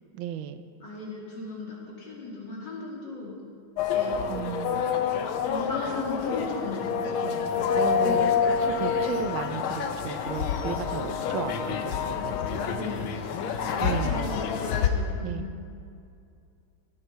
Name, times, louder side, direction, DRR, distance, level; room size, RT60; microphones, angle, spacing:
voice 1, 0.1-0.6 4.3-4.8 7.7-13.1 13.8-14.3 15.2-15.5, right 10 dB, 80° right, 10 dB, 1.4 m, -35 dB
voice 2, 0.8-3.4 3.9-4.2 5.5-7.8 12.7-13.2 13.5-15.5, left 3 dB, 60° left, -3 dB, 3.2 m, -37 dB
sound 1, 3.8-14.9, left 7 dB, 90° left, 1.7 m, -27 dB
18.5 x 9.8 x 4.5 m, 2.4 s
omnidirectional pair, 2.2 m